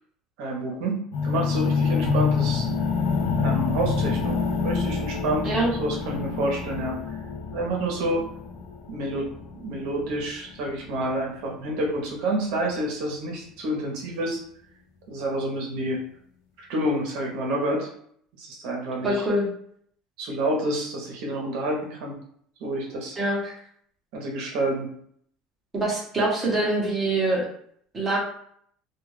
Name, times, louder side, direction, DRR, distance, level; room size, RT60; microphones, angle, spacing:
voice 1, 0.4-2.7 3.4-7.2 7.5-8.2 8.9-14.4 15.1-16.0 16.6-17.9 18.4-19.3 20.2-22.2 22.6-23.2 24.1-24.9, right 1 dB, 60° right, 0 dB, 0.7 m, -28 dB
sound 1, 1.1-11.1, left 5 dB, 70° left, 0.4 m, -27 dB
voice 2, 19.0-19.5 23.2-23.5 25.7-27.4 27.9-28.2, right 1 dB, 10° right, -4 dB, 0.8 m, -24 dB
2.2 x 2.2 x 3.2 m, 0.64 s
cardioid pair, 175°, 0 cm